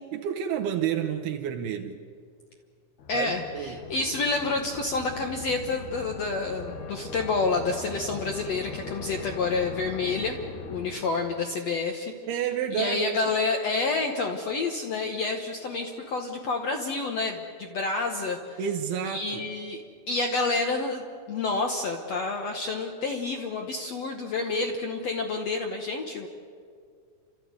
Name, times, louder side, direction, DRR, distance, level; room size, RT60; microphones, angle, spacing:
voice 1, 0.1-2.0 3.1-3.8 12.3-13.3 18.6-19.5, right 8 dB, 80° right, 2.9 m, -30 dB
sound 1, 3.0-11.5, left 4 dB, 85° left, 3.8 m, -40 dB
voice 2, 3.1-10.4 10.7-12.1 12.7-18.6 19.0-19.8 20.1-26.3, left 3 dB, 65° left, 1.6 m, -29 dB
30.0 x 13.5 x 9.5 m
omnidirectional pair, 4.5 m